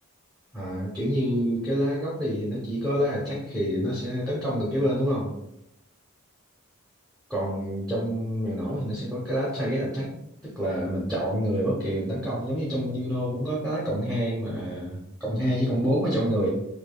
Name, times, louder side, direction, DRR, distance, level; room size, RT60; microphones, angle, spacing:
voice 1, 0.5-5.3 7.3-10.1 10.4-16.5, equal, 5° left, -7 dB, 0.7 m, -27 dB
4.8 x 2.4 x 2.2 m, 0.80 s
head